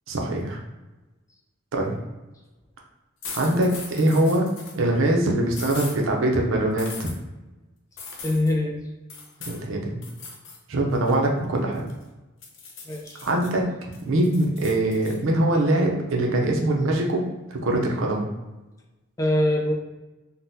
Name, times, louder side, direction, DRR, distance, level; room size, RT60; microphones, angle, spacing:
voice 1, 0.1-0.6 1.7-2.0 3.3-4.5 4.7-7.1 9.5-10.0 10.7-11.9 13.2-13.6 14.0-18.3, right 1 dB, 80° right, 0 dB, 0.6 m, -23 dB
sound 1, 3.2-4.8 5.5-6.0 6.8-7.2 8.0-8.5 9.1-9.6 10.0-10.6 10.9-12.0 12.4-13.5 13.9-15.2, left 4 dB, 70° left, 0.6 m, -39 dB
voice 2, 8.2-8.9 12.9-13.2 19.2-19.7, left 1 dB, 15° left, 0 dB, 0.3 m, -23 dB
3.8 x 2.1 x 2.7 m, 1.1 s
head